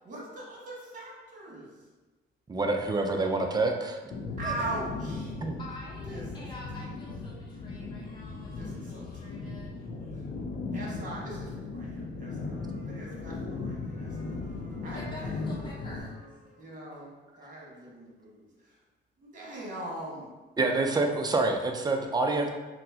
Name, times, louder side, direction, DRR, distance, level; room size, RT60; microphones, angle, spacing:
voice 1, 0.0-1.9 4.4-5.3 6.1-6.4 8.6-18.8 19.2-20.3 20.8-20.9, right 2 dB, 40° right, -5 dB, 1.3 m, -42 dB
voice 2, 2.5-4.0 5.4-5.5 20.6-22.5, right 3 dB, 20° right, 3 dB, 0.4 m, -27 dB
sound 1, 4.1-16.0, left 3 dB, 45° left, 0.5 m, -37 dB
voice 3, 5.6-9.9 14.8-16.2, left 1 dB, 20° left, -5 dB, 0.9 m, -47 dB
4.2 x 2.1 x 2.8 m, 1.2 s
cardioid pair, 90°, 20 cm